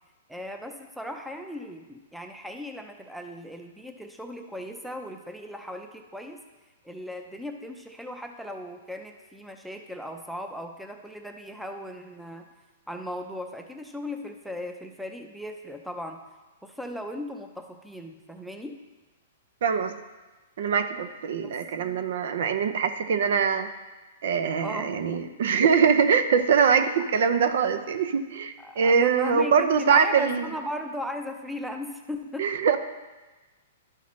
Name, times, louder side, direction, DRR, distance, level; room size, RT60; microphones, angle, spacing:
voice 1, 0.3-6.4 6.8-12.5 12.9-16.2 16.6-18.8 21.4-21.5 24.6-24.9 28.6-32.5, left 1 dB, ahead, 4 dB, 0.6 m, -37 dB
voice 2, 19.6-20.0 20.6-23.7 24.2-30.5 32.4-32.8, right 6 dB, 70° right, 9 dB, 0.5 m, -23 dB
11.5 x 5.7 x 3.1 m, 1.2 s
hypercardioid pair, 135°, 0 cm